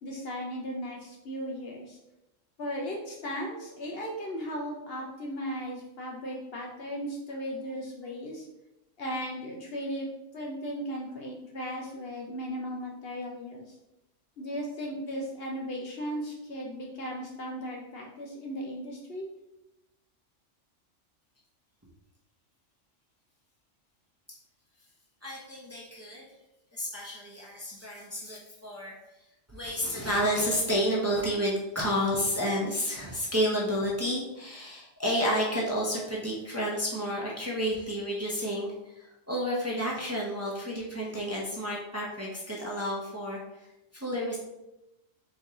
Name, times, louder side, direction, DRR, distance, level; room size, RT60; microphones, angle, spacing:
voice 1, 0.0-2.0 2.6-8.4 9.0-10.1 10.3-13.7 14.4-19.3, equal, 55° left, -1 dB, 0.8 m, -36 dB
voice 2, 25.2-26.3 26.7-29.0 29.5-43.7 43.9-44.4, equal, 15° right, -4 dB, 0.8 m, -30 dB
4.3 x 3.1 x 3.7 m, 0.93 s
omnidirectional pair, 1.3 m